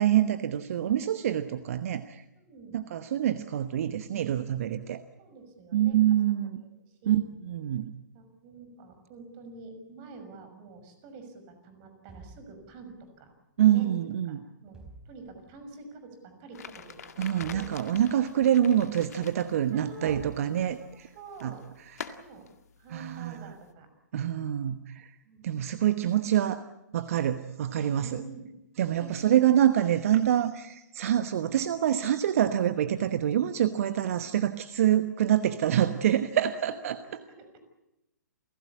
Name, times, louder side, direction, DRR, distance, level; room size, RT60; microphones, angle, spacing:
voice 1, 0.0-2.2 2.7-5.0 5.7-6.6 7.1-7.9 13.6-14.4 17.2-21.1 21.4-21.5 22.0-22.1 22.9-23.5 24.1-25.1 25.4-26.6 26.9-28.2 28.8-37.0, right 11 dB, 50° right, 11 dB, 1.1 m, -26 dB
voice 2, 2.3-2.8 4.7-4.8 5.2-6.5 6.9-7.2 8.1-13.3 13.7-14.0 14.3-14.4 14.6-14.8 15.0-17.7 19.7-20.2 20.8-20.9 21.1-21.6 22.1-22.4 22.8-23.9 25.2-25.7 27.7-28.5 29.0-29.5 34.0-34.4 35.8-36.3 36.7-36.8 37.0-37.5, right 4 dB, 35° right, 8 dB, 6.2 m, -47 dB
sound 1, 12.1-13.2 14.7-15.7 17.4-18.5 20.1-21.0, right 2 dB, 5° right, 4.5 m, -51 dB
sound 2, 16.5-23.7, left 7 dB, 60° left, 2.0 m, -47 dB
29.0 x 16.5 x 8.5 m, 0.90 s
figure-of-eight pair, 120°, 10 cm